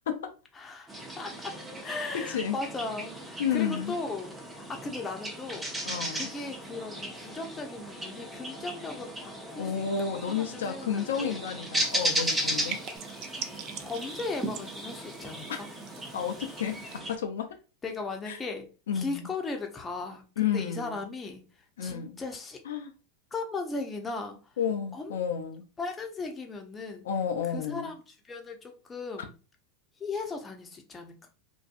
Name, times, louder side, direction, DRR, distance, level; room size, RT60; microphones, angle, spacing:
voice 1, 0.6-1.5 1.8-5.7 6.1-11.4 13.8-15.7 17.8-18.7 18.9-21.4 21.8-22.6 23.3-24.4 24.9-25.2 25.8-27.0 27.5-29.3 30.0-31.3, left 3 dB, 20° left, 0.6 m, -37 dB
sound 1, 0.9-17.2, right 1 dB, 15° right, 0.7 m, -36 dB
voice 2, 1.9-2.6 3.4-3.9 5.8-6.3 9.6-12.8 15.5-15.6 16.1-17.5 18.3-18.4 18.9-19.3 20.4-21.0 21.8-22.2 22.7-22.9 24.6-25.6 27.0-27.9, left 7 dB, 80° left, 0.4 m, -31 dB
sound 2, 5.7-13.0, left 1 dB, 85° right, 1.2 m, -55 dB
sound 3, 11.8-17.0, right 9 dB, 55° right, 0.4 m, -44 dB
2.5 x 2.2 x 2.5 m
hypercardioid pair, 95°, 0 cm